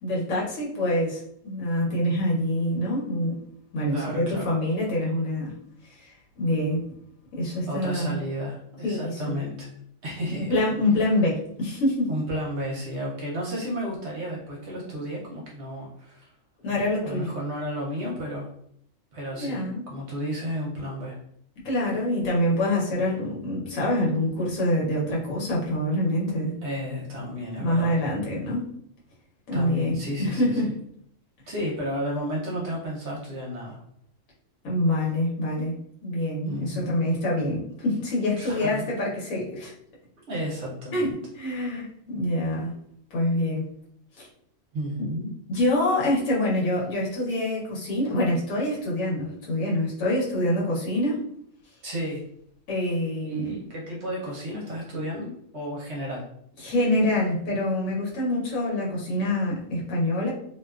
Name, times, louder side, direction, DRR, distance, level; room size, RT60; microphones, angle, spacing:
voice 1, 0.0-3.4 3.7-5.5 5.8-6.8 7.3-8.2 8.8-9.4 10.5-12.1 16.6-17.3 19.3-19.8 21.6-26.5 27.6-28.7 29.5-30.7 34.6-35.7 36.0-39.7 40.9-42.7 43.1-43.6 44.2-44.3 45.5-51.2 52.7-53.6 56.6-60.3, left 1 dB, 85° left, -4 dB, 1.2 m, -26 dB
voice 2, 3.9-4.5 7.7-9.7 10.0-10.5 12.1-16.3 17.0-18.5 19.1-21.2 26.6-27.9 29.5-30.6 31.5-33.8 36.4-37.0 38.4-38.9 40.3-41.2 44.7-45.3 51.8-52.2 53.2-55.3 55.5-56.2, equal, 65° right, -3 dB, 0.8 m, -32 dB
2.6 x 2.2 x 2.3 m, 0.69 s
omnidirectional pair, 1.4 m